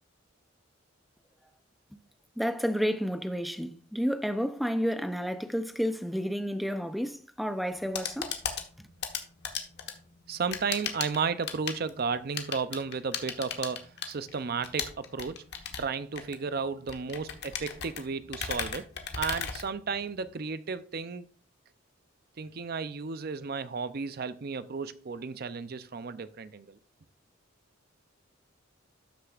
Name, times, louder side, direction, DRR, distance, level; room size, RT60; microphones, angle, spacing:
voice 1, 2.4-8.3 8.8-8.9, equal, ahead, 0.6 m, -31 dB
sound 1, 7.7-20.3, left 7 dB, 55° left, 1.2 m, -37 dB
voice 2, 10.3-15.4 15.8-18.9 19.2-21.3 22.4-26.8, right 5 dB, 50° right, 0.5 m, -33 dB
12.5 x 6.5 x 2.4 m
head